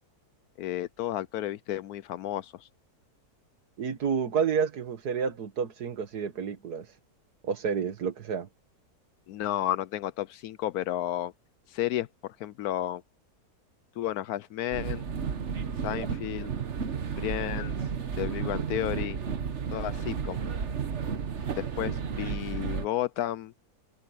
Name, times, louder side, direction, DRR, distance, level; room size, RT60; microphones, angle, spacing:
voice 1, 0.6-2.7 9.3-11.3 11.7-13.0 14.0-15.1 15.8-16.5 17.2-17.8 18.1-19.2 19.7-20.5 21.6-23.5, left 13 dB, 75° left, 1.1 m, -32 dB
voice 2, 3.8-7.0 7.4-8.5 15.9-16.1, right 6 dB, 80° right, 2.0 m, -30 dB
sound 1, 14.7-22.9, right 6 dB, 50° right, 1.4 m, -32 dB
omnidirectional pair, 1.7 m